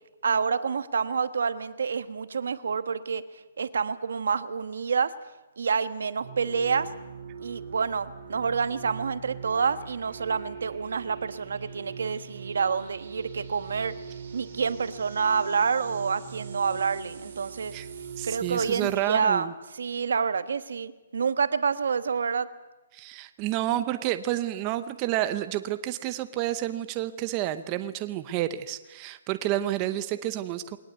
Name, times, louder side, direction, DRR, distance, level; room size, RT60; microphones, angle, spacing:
voice 1, 0.2-3.2 3.6-5.1 5.6-6.9 7.4-13.9 14.3-17.7 18.2-19.5 19.7-22.5, right 5 dB, 80° right, 13 dB, 1.3 m, -28 dB
sound 1, 6.2-18.9, right 5 dB, 45° right, 5.6 m, -41 dB
voice 2, 18.2-19.5 22.9-30.8, right 13 dB, 20° right, 11 dB, 0.8 m, -30 dB
21.5 x 19.0 x 8.1 m, 1.1 s
hypercardioid pair, 170°, 0 cm